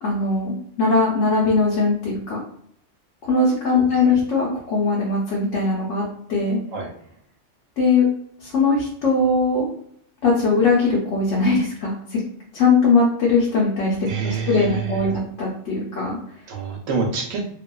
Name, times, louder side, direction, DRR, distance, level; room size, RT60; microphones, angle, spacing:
voice 1, 0.0-2.4 3.3-6.0 6.3-6.6 7.8-8.1 8.4-9.7 10.2-12.2 12.5-16.2, left 3 dB, 75° left, -4 dB, 0.9 m, -20 dB
voice 2, 3.7-4.2 6.7-6.9 14.1-15.2 16.5-17.5, right 5 dB, 90° right, 2 dB, 1.0 m, -27 dB
2.6 x 2.3 x 2.2 m, 0.66 s
omnidirectional pair, 1.3 m